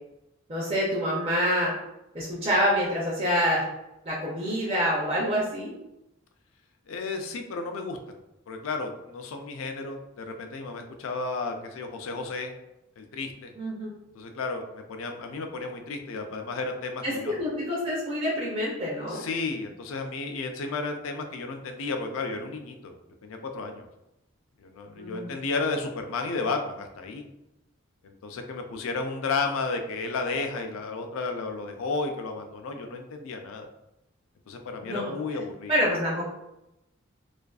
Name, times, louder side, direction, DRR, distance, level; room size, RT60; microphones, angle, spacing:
voice 1, 0.5-1.7 2.1-3.7 4.1-5.7 13.6-14.0 17.0-19.2 25.0-25.3 34.8-35.1 35.7-36.2, equal, 30° right, -6 dB, 0.4 m, -27 dB
voice 2, 6.9-8.2 8.5-12.5 13.0-13.5 14.1-17.4 19.1-22.9 23.2-23.8 24.6-27.2 28.0-33.7 34.5-35.7, left 3 dB, 80° left, 5 dB, 0.4 m, -33 dB
2.4 x 2.3 x 2.3 m, 0.91 s
head